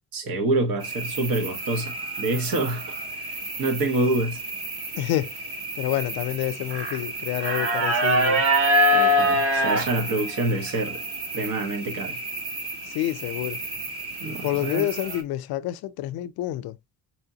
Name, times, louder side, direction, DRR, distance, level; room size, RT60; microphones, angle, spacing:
voice 1, 0.1-2.8 3.6-4.4 8.9-11.0 11.3-12.2 14.2-14.9, right 2 dB, 70° right, 1.5 m, -26 dB
sound 1, 0.8-15.2, right 1 dB, 40° right, 1.0 m, -27 dB
voice 2, 4.9-5.3 5.8-8.4 12.9-13.6 14.4-16.8, left 14 dB, 90° left, 0.5 m, -28 dB
4.4 x 3.4 x 2.8 m
cardioid pair, 155°, 36 cm